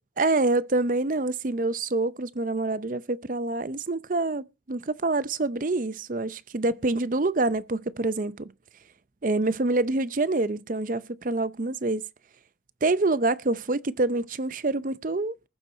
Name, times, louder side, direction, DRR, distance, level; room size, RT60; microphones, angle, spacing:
voice 1, 0.2-8.5 9.2-12.0 12.8-15.5, right 2 dB, 45° right, 0.6 m, -26 dB
20.0 x 7.5 x 4.1 m
head